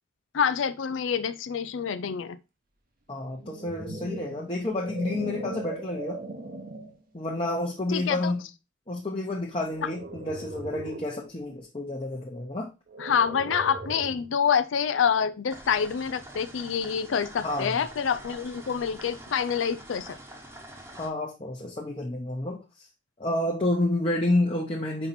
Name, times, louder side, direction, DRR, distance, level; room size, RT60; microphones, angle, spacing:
voice 1, 0.3-2.4 7.9-8.3 13.0-20.2, left 7 dB, 85° left, 0.4 m, -27 dB
voice 2, 3.1-6.2 7.1-8.4 8.9-12.7 17.4-17.8 20.9-22.9 23.2-25.1, left 1 dB, 30° left, 0.9 m, -29 dB
sound 1, 3.3-7.0 7.6-7.9 9.7-11.2 12.9-14.3, right 2 dB, 50° right, 1.0 m, -39 dB
sound 2, 15.5-21.1, right 1 dB, 15° right, 1.1 m, -45 dB
5.5 x 4.3 x 4.2 m
head